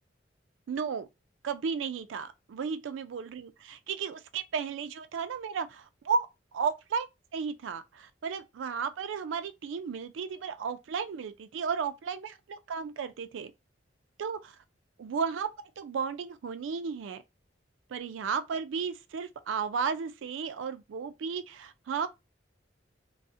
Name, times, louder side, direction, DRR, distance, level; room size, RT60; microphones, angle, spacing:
voice 1, 0.7-1.1 1.4-6.3 6.5-7.1 7.3-13.5 14.2-14.5 15.0-15.5 15.8-17.2 17.9-22.1, right 6 dB, 85° right, 0.4 m, -34 dB
2.3 x 2.0 x 2.6 m
head